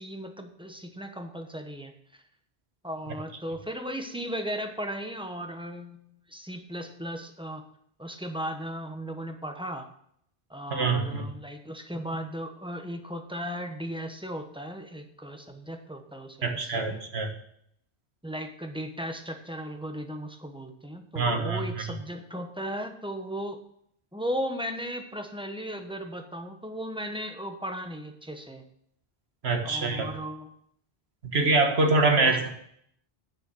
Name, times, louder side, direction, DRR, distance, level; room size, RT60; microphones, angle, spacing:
voice 1, 0.0-2.2 2.8-6.0 6.3-7.7 8.0-9.9 10.5-17.0 18.2-23.6 24.1-28.6 29.6-30.5 32.2-32.5, equal, 5° right, 5 dB, 1.0 m, -36 dB
voice 2, 10.7-11.3 16.4-17.3 21.1-21.8 29.4-30.1 31.3-32.5, right 3 dB, 75° right, 4 dB, 1.6 m, -24 dB
9.5 x 6.8 x 6.2 m, 0.70 s
omnidirectional pair, 1.1 m